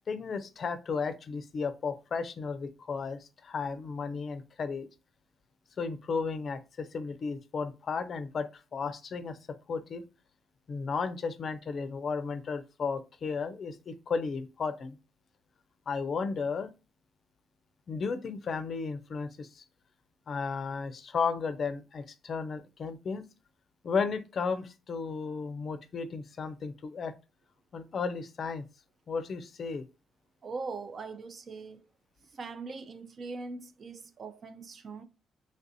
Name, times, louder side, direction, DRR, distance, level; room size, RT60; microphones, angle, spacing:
voice 1, 0.1-4.9 5.8-9.4 9.7-10.0 10.7-15.0 15.9-16.7 17.9-19.6 20.3-23.3 23.8-27.1 27.7-28.6 29.1-29.8, left 5 dB, 50° left, 0.4 m, -34 dB
voice 2, 30.4-31.9 32.3-35.0, right 4 dB, 45° right, 0.5 m, -41 dB
3.3 x 2.5 x 2.6 m
cardioid pair, 90°, 0 cm